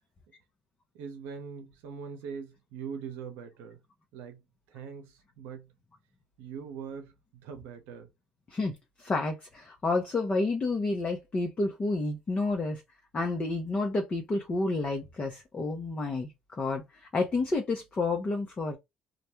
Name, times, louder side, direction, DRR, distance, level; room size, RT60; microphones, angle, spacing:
voice 1, 0.9-3.8 4.1-4.4 4.7-5.7 6.4-8.1, right 6 dB, 75° right, 0.7 m, -42 dB
voice 2, 8.5-12.8 13.1-18.8, left 3 dB, 35° left, 0.7 m, -30 dB
2.3 x 2.1 x 2.9 m
hypercardioid pair, 60°, 3 cm